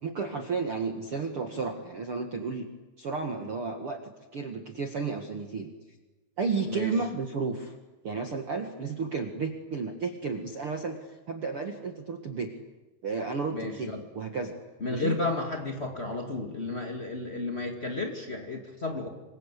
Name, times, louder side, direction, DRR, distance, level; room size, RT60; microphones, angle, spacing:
voice 1, 0.0-2.7 3.0-4.0 4.3-5.7 6.4-7.7 8.0-11.0 11.3-12.5 13.0-14.6 14.9-15.2, right 4 dB, 65° right, 5 dB, 1.4 m, -32 dB
voice 2, 13.5-14.0 14.8-19.1, left 2 dB, 65° left, 3 dB, 0.6 m, -32 dB
26.5 x 26.5 x 8.3 m, 1.1 s
omnidirectional pair, 5.4 m